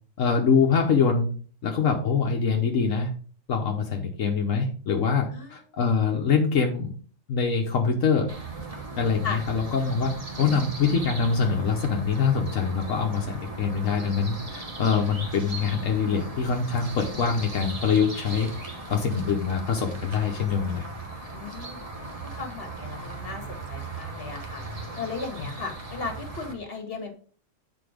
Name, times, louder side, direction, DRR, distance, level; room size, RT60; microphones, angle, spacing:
voice 1, 0.2-1.3 1.6-3.1 3.5-6.9 7.3-8.3 9.0-10.1 10.4-18.5 18.9-20.8 25.4-25.5, left 5 dB, 80° left, 1 dB, 1.4 m, -24 dB
sound 1, 8.3-26.5, right 2 dB, 30° right, 1.3 m, -38 dB
voice 2, 21.3-21.9 22.2-24.6 25.0-27.1, left 4 dB, 45° left, 4 dB, 1.9 m, -36 dB
8.0 x 4.5 x 5.0 m, 0.42 s
omnidirectional pair, 1.3 m